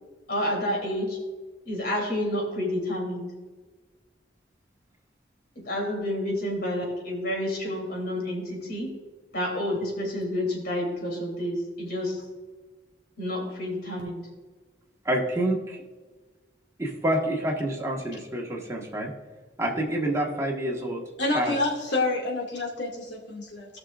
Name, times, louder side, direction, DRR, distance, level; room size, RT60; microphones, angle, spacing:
voice 1, 0.3-1.2 1.6-3.3 5.5-8.9 9.3-12.2 13.2-14.2, left 1 dB, 60° left, -1 dB, 3.2 m, -29 dB
voice 2, 15.0-15.8 16.8-19.1 19.6-21.0 21.3-21.5, right 1 dB, 15° right, -1 dB, 1.5 m, -27 dB
voice 3, 21.2-23.8, left 2 dB, 85° left, -2 dB, 2.2 m, -28 dB
17.0 x 6.1 x 2.5 m, 1.3 s
head